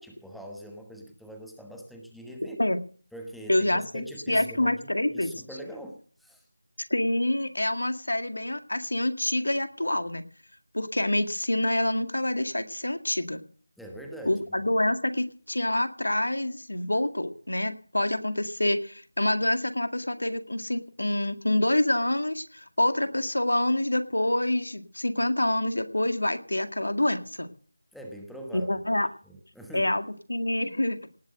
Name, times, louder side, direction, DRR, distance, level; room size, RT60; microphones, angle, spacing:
voice 1, 0.0-2.6 3.1-6.5 13.8-14.6 27.9-28.7 29.3-29.9, right 1 dB, ahead, 1 dB, 1.2 m, -43 dB
voice 2, 3.5-5.4 6.9-10.3 10.7-13.4 14.3-27.5 28.5-29.1 29.7-31.0, left 1 dB, 85° left, 8 dB, 2.0 m, -27 dB
18.5 x 7.8 x 7.9 m, 0.44 s
figure-of-eight pair, 170°, 0 cm